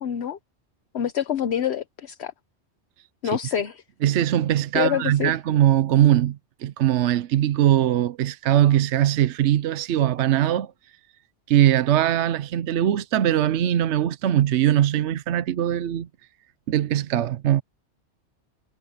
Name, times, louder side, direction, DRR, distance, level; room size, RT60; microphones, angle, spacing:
voice 1, 0.0-0.4 0.9-2.3 3.2-3.8 4.7-5.3, left 9 dB, 65° left, 1.1 m, -26 dB
voice 2, 4.0-10.7 11.5-16.1 16.7-17.6, right 11 dB, 75° right, 0.9 m, -21 dB
omnidirectional pair, 1.2 m